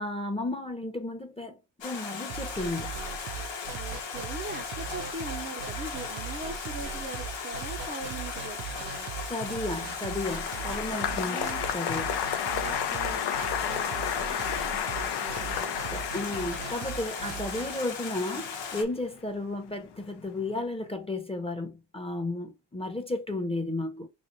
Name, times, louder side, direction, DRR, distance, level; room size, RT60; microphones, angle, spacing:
voice 1, 0.0-2.9 9.3-12.2 15.9-24.1, left 2 dB, 15° left, 0.9 m, -33 dB
Stream, 1.8-18.8, left 5 dB, 85° left, 1.0 m, -37 dB
sound 1, 2.3-17.8, right 7 dB, 85° right, 0.8 m, -40 dB
voice 2, 3.7-9.1 11.3-11.6 12.4-16.0, right 2 dB, 25° right, 0.7 m, -42 dB
Applause, 9.3-19.7 19.9-20.5, left 9 dB, 65° left, 0.6 m, -33 dB
3.3 x 2.5 x 3.9 m
cardioid pair, 60°, 43 cm